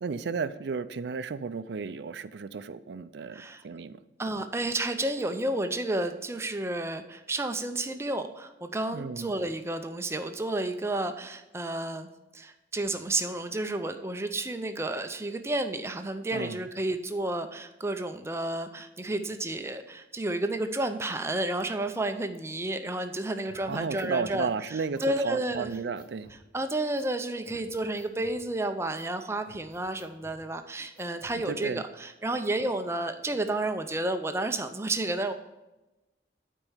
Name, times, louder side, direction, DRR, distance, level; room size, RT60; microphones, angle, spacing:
voice 1, 0.0-4.0 8.9-9.3 16.3-16.6 23.7-26.3 31.5-31.8, right 5 dB, 70° right, 13 dB, 0.4 m, -33 dB
voice 2, 3.3-3.6 4.2-25.7 26.5-35.3, right 2 dB, 15° right, 7 dB, 0.5 m, -31 dB
sound 1, 23.5-24.4 24.9-25.0 25.5-26.4 27.0-27.1 27.4-28.4 28.9-29.1 29.5-30.4 31.0-31.4, equal, 20° left, 1.3 m, -55 dB
8.9 x 4.6 x 5.5 m, 1.0 s
head